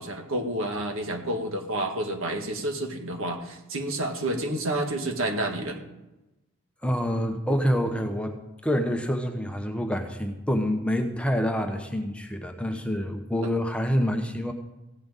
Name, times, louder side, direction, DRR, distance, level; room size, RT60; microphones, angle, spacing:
voice 1, 0.0-5.8, right 1 dB, 65° right, 4 dB, 1.7 m, -29 dB
voice 2, 6.8-14.5, equal, 5° left, 5 dB, 0.9 m, -27 dB
15.5 x 6.0 x 9.0 m, 0.99 s
head